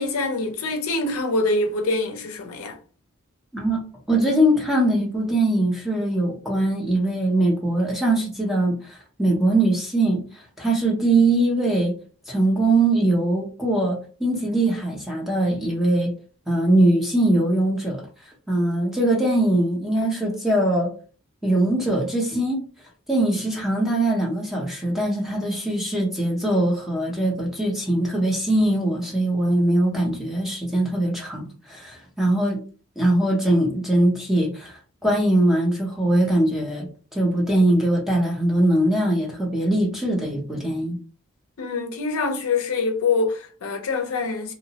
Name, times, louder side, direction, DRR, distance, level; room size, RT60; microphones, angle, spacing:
voice 1, 0.0-2.8 41.6-44.5, left 3 dB, 70° left, 0.5 m, -25 dB
voice 2, 4.1-11.9 12.3-16.1 16.5-18.0 18.5-20.9 21.4-22.6 23.1-32.6 33.0-41.0, right 1 dB, ahead, 0.6 m, -21 dB
2.8 x 2.0 x 2.7 m
head